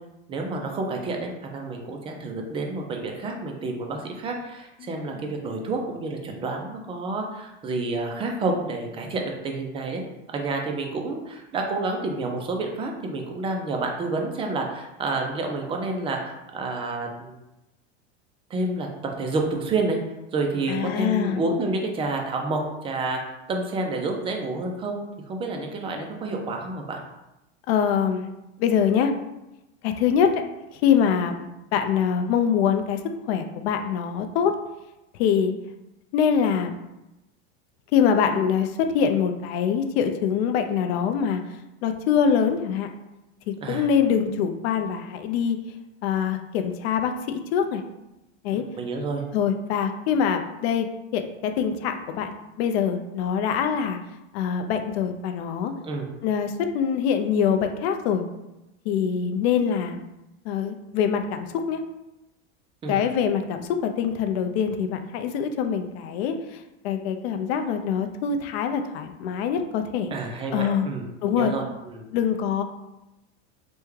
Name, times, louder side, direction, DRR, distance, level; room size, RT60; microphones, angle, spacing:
voice 1, 0.3-10.0 10.3-17.3 18.5-20.0 20.3-23.2 23.5-27.0 43.6-43.8 48.8-49.2 55.8-56.1 62.8-63.0 70.1-72.1, right 3 dB, 15° right, 2 dB, 0.3 m, -29 dB
voice 2, 4.8-5.3 20.7-21.4 27.7-28.3 28.6-29.1 29.8-30.4 30.7-33.0 33.3-34.5 35.1-35.5 36.1-36.8 37.9-41.4 41.8-42.9 43.5-45.6 46.0-47.8 48.4-48.6 49.3-50.9 51.1-54.0 54.3-55.7 56.2-58.2 58.9-60.0 60.4-61.8 62.9-70.1 70.5-70.9 71.2-71.5 72.1-72.6, left 7 dB, 70° left, 6 dB, 0.5 m, -24 dB
3.4 x 2.2 x 3.1 m, 0.94 s
supercardioid pair, 130°, 33 cm